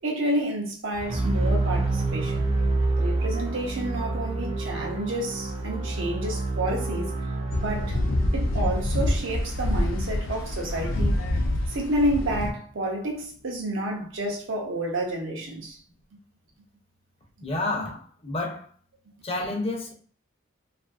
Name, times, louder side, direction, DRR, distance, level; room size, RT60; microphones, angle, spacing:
voice 1, 0.0-2.4 3.0-7.1 7.6-8.0 8.3-11.2 11.7-15.8, right 1 dB, 70° right, 0.6 m, -29 dB
sound 1, 0.9-11.0, right 2 dB, 30° right, 0.5 m, -28 dB
sound 2, 7.5-12.5, left 1 dB, 75° left, 0.5 m, -26 dB
voice 2, 17.4-18.7 19.2-19.9, left 2 dB, 30° left, 0.6 m, -30 dB
2.6 x 2.5 x 2.4 m
head